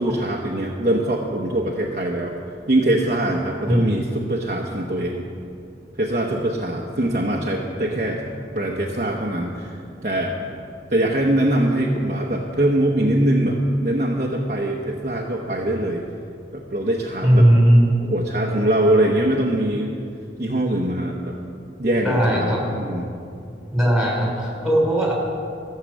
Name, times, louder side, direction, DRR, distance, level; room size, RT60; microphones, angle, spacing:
voice 1, 0.0-2.3 2.7-5.3 6.0-8.2 8.5-10.4 10.9-16.0 16.5-17.5 18.0-19.9 20.4-21.4 21.8-23.0, right 1 dB, 45° right, -1 dB, 0.9 m, -22 dB
voice 2, 17.2-17.8 22.0-22.6 23.7-25.1, equal, ahead, -3 dB, 3.2 m, -17 dB
15.0 x 6.6 x 7.5 m, 2.5 s
head